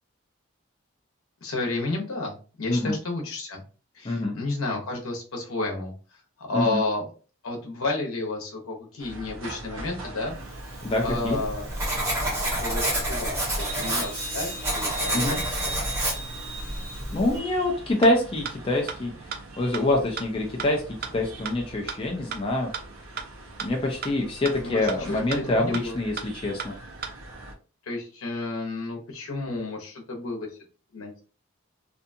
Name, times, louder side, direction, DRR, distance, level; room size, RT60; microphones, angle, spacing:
voice 1, 1.4-3.6 3.9-5.9 6.4-7.1 7.4-10.3 11.0-11.7 12.2-15.7 24.6-26.0 27.9-30.5 30.9-31.2, left 2 dB, 80° left, 0 dB, 0.8 m, -31 dB
sound 1, 9.0-27.5, right 1 dB, 70° right, 0.8 m, -41 dB
Writing, 10.7-17.4, right 1 dB, 15° right, 0.8 m, -29 dB
voice 2, 10.8-11.4 15.1-15.4 17.1-19.1 19.6-20.8 21.1-22.7 23.6-26.7, left 2 dB, 25° left, 0 dB, 0.4 m, -25 dB
sound 2, 18.0-18.1 18.4-18.5 18.9-19.0 19.3-19.4 19.7-19.8 20.2-20.3 20.6-20.7 21.0-21.1 21.4-21.5 21.9-22.0 22.3-22.4 22.7-22.8 23.2-23.3 23.6-23.7 24.0-24.1 24.4-24.5 24.9-25.0 25.3-25.4 25.7-25.8 26.2-26.3 26.6-26.7 27.0-27.1, right 7 dB, 45° right, 0.3 m, -32 dB
2.6 x 2.3 x 2.6 m, 0.37 s
head